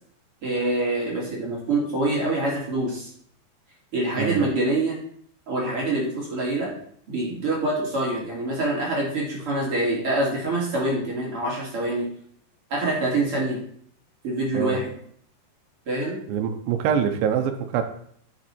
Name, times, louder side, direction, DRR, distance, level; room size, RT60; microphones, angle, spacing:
voice 1, 0.4-3.1 3.9-5.0 5.5-6.7 7.1-12.1 12.7-13.6 14.2-14.9 15.9-16.2, right 2 dB, 35° right, -4 dB, 2.8 m, -25 dB
voice 2, 4.2-4.5 14.5-14.8 16.3-17.8, right 8 dB, 80° right, 7 dB, 3.1 m, -24 dB
10.5 x 7.2 x 4.5 m, 0.63 s
omnidirectional pair, 5.5 m